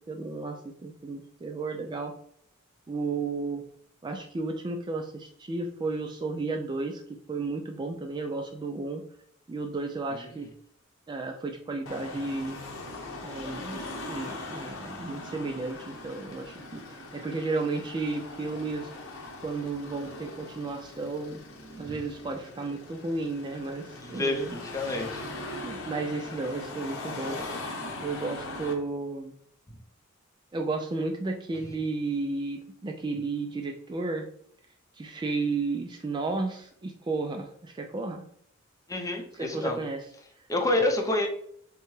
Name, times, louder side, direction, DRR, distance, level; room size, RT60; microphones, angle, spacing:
voice 1, 0.1-2.1 2.9-3.6 4.0-9.0 9.5-10.5 11.1-12.6 13.2-18.9 19.4-21.4 21.8-24.6 25.6-27.4 28.0-29.3 30.5-34.3 34.9-38.2 39.3-40.0, right 3 dB, 20° right, 4 dB, 0.3 m, -33 dB
Car passing by / Traffic noise roadway noise / Engine, 11.9-28.7, left 2 dB, 75° left, 1.0 m, -40 dB
voice 2, 24.0-25.2 38.9-39.8 40.5-41.3, left 2 dB, 15° left, 2 dB, 0.7 m, -28 dB
6.5 x 2.2 x 3.2 m, 0.68 s
head